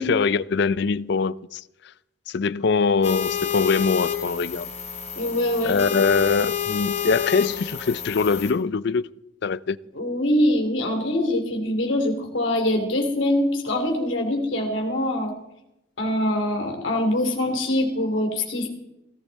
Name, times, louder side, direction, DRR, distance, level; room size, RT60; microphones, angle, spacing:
voice 1, 0.0-1.6 2.3-4.7 5.6-9.1 9.4-9.8, left 5 dB, 60° left, 0.4 m, -23 dB
sound 1, 3.0-8.5, left 8 dB, 35° left, 2.2 m, -29 dB
voice 2, 5.1-5.8 9.9-15.3 16.0-18.7, left 1 dB, 80° left, 3.3 m, -23 dB
17.0 x 15.0 x 4.2 m
head